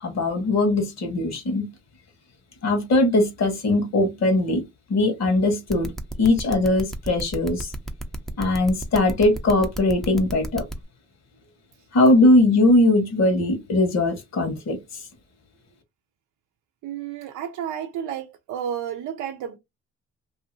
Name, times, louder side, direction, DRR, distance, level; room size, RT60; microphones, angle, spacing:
voice 1, 0.0-1.7 2.6-4.6 4.9-5.9 6.2-7.7 8.4-10.6 11.9-14.8, left 2 dB, 60° left, 1.2 m, -20 dB
sound 1, 5.7-10.8, right 1 dB, ahead, 0.5 m, -33 dB
voice 2, 16.8-19.6, right 9 dB, 80° right, 0.5 m, -31 dB
2.7 x 2.7 x 2.7 m
cardioid pair, 90°, 30 cm